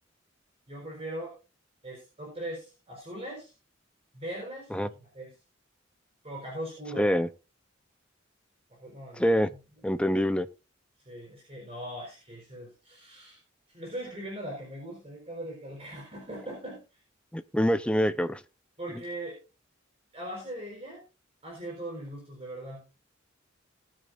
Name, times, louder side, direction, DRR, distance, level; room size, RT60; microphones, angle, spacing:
voice 1, 0.7-1.4 1.8-3.5 4.1-5.4 6.2-7.1 8.7-9.2 11.0-13.4 13.7-17.0 18.8-19.4 20.1-21.0 21.4-22.8, right 1 dB, 30° right, 4.3 m, -40 dB
voice 2, 7.0-7.3 9.1-9.5 9.8-10.5 17.3-18.4, equal, 5° left, 0.7 m, -25 dB
19.5 x 8.9 x 2.6 m
head